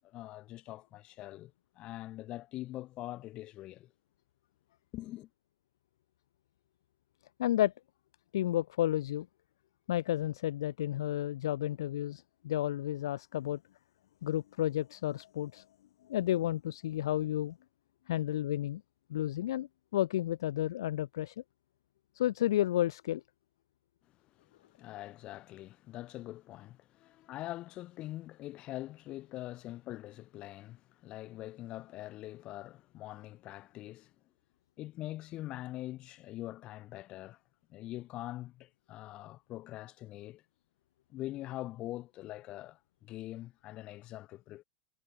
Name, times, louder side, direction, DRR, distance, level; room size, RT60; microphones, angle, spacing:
voice 1, 0.0-3.9 4.9-5.3 24.4-34.1 34.8-37.4 37.7-40.4 41.1-44.6, left 15 dB, 40° left, 3.2 m, -43 dB
voice 2, 7.4-7.7 8.3-9.3 9.9-13.6 14.2-15.6 16.1-17.6 18.1-18.8 19.1-21.3 22.1-23.2, left 13 dB, 70° left, 0.4 m, -31 dB
figure-of-eight pair, 90°, 2 cm